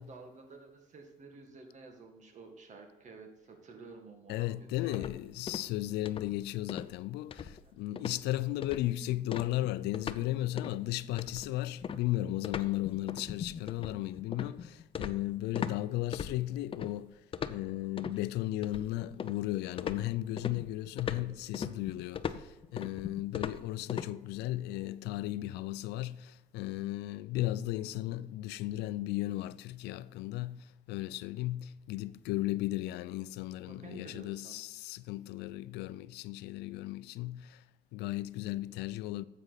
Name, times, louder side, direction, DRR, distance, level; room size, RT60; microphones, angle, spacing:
voice 1, 0.0-5.1 7.6-7.7 33.7-34.6, right 4 dB, 45° right, 2.0 m, -51 dB
voice 2, 4.3-17.2 17.5-37.6 37.9-39.2, left 16 dB, 85° left, 0.4 m, -35 dB
sound 1, 4.9-5.8 6.0-6.4 6.7-6.9 7.3-7.7 8.0-8.2 8.6-9.0 9.3-10.3 10.6-10.8 11.2-15.8 16.1-16.9 17.3-18.2 18.6-19.5 19.8-24.1, left 7 dB, 30° left, 0.5 m, -39 dB
9.7 x 7.7 x 4.1 m
cardioid pair, 110°, 17 cm